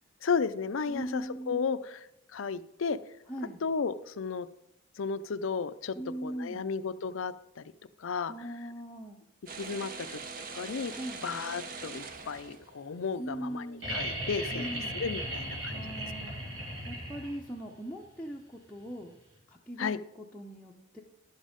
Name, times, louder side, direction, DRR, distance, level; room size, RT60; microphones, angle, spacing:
voice 1, 0.2-2.0 2.3-3.0 3.6-4.5 5.0-6.0 6.2-7.6 8.0-8.3 9.6-10.2 10.5-10.9 11.2-15.8 19.8-20.0, left 5 dB, 75° left, 14 dB, 0.5 m, -33 dB
voice 2, 0.9-1.8 3.3-3.6 5.9-6.7 8.3-9.2 10.9-11.3 13.2-14.1 14.5-15.0 15.7-19.1 19.5-21.0, right 1 dB, 5° left, -3 dB, 0.6 m, -40 dB
sound 1, 9.5-13.1, right 4 dB, 40° right, 0.8 m, -42 dB
sound 2, 13.8-17.6 19.3-19.4, right 1 dB, 70° right, 3.2 m, -36 dB
11.0 x 7.4 x 5.1 m, 0.79 s
head